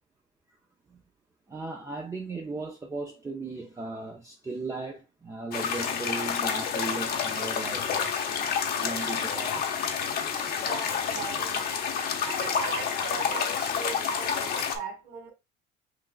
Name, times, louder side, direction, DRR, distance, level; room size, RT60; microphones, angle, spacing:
voice 1, 1.5-8.2 8.8-9.7, right 3 dB, 15° right, 0.5 m, -37 dB
sound 1, 5.5-14.8, left 7 dB, 50° left, 0.8 m, -29 dB
voice 2, 10.6-11.8 12.2-15.3, right 5 dB, 70° right, 2.0 m, -39 dB
5.9 x 2.4 x 2.4 m
cardioid pair, 120°, 21 cm